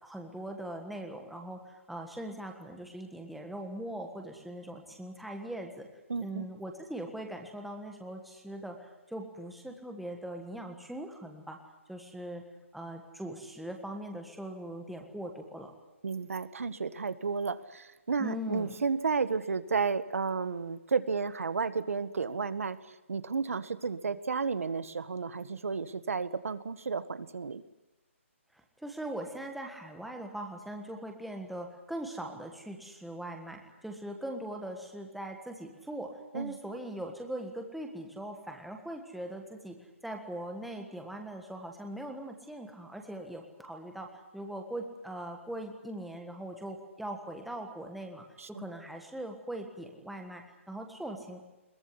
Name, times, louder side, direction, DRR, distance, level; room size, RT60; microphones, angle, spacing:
voice 1, 0.0-5.9 6.2-11.6 11.9-12.4 12.7-15.7 18.2-18.7 28.5-39.8 40.0-51.4, right 1 dB, ahead, 2 dB, 1.5 m, -41 dB
voice 2, 6.1-6.5 16.0-22.8 23.1-27.6 36.3-36.6 48.4-48.7, right 5 dB, 90° right, 14 dB, 1.7 m, -32 dB
22.0 x 19.0 x 9.9 m, 1.0 s
hypercardioid pair, 175°, 7 cm